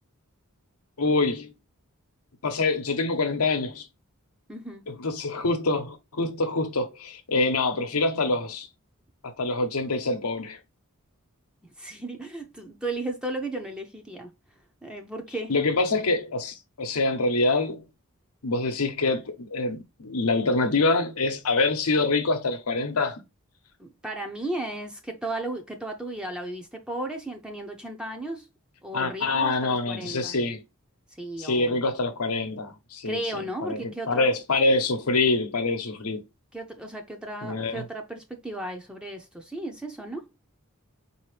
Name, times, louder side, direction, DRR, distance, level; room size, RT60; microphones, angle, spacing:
voice 1, 1.0-1.5 2.4-3.9 4.9-8.7 9.2-10.6 15.5-17.8 18.4-23.2 28.9-30.6 31.4-36.2 37.4-37.8, left 3 dB, 85° left, 0.9 m, -25 dB
voice 2, 4.5-4.9 11.8-14.3 14.8-15.5 23.8-28.5 28.8-30.4 31.2-31.8 33.0-34.3 36.5-40.3, right 2 dB, 5° right, 0.6 m, -35 dB
4.8 x 2.8 x 3.2 m
head